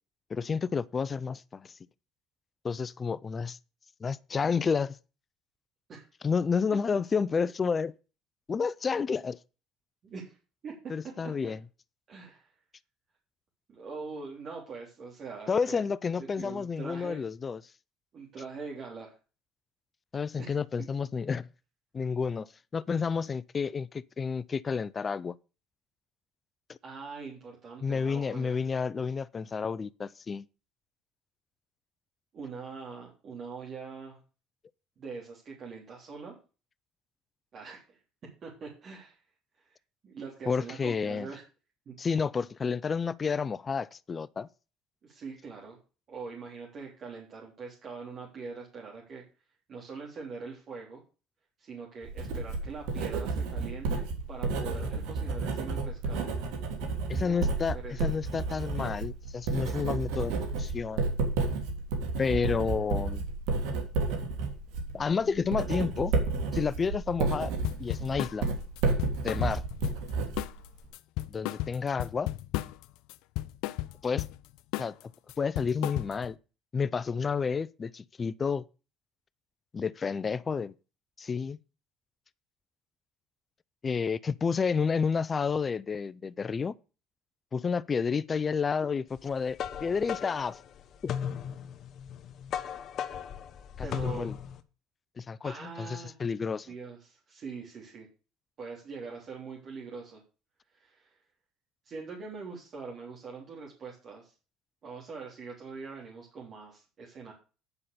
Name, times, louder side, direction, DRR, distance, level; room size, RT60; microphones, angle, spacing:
voice 1, 0.3-1.8 2.6-3.6 4.0-5.0 6.2-7.9 8.5-9.4 10.9-11.6 15.5-17.6 20.1-21.5 21.9-25.3 27.8-30.5 40.5-41.3 42.0-44.5 57.1-61.0 62.2-63.3 64.9-66.1 66.5-67.5 67.8-68.5 69.2-69.6 71.3-72.3 74.0-74.3 74.8-75.1 75.4-76.4 76.7-78.7 79.7-80.7 81.2-81.6 83.8-86.7 87.5-90.6 91.0-91.1 93.8-94.3 95.2-96.7, left 5 dB, 30° left, 0.5 m, -30 dB
voice 2, 10.0-10.4 10.6-11.1 11.4-11.5 12.1-12.5 13.7-15.8 16.4-17.2 18.1-19.2 20.4-20.9 26.8-28.6 32.3-34.2 35.0-36.4 37.5-38.0 38.4-39.2 39.5-39.7 40.0-41.4 41.8-42.0 45.0-45.8 46.1-49.2 49.7-51.0 51.6-56.3 57.1-57.5 57.8-58.1 93.8-94.3 95.4-96.2 96.7-98.1 98.6-100.2 100.7-101.1 101.8-104.3 104.8-107.3, right 4 dB, 45° right, 3.4 m, -43 dB
Writing, 52.0-70.9, right 3 dB, 80° right, 3.0 m, -31 dB
sound 1, 67.6-68.4 68.8-70.1 70.4-70.7 70.9-72.8 73.1-74.4 74.7-75.0 75.3-76.3, left 17 dB, 75° left, 0.6 m, -34 dB
sound 2, 89.2-94.6, left 8 dB, 50° left, 1.0 m, -37 dB
9.9 x 5.7 x 6.8 m
supercardioid pair, 95°, 0 cm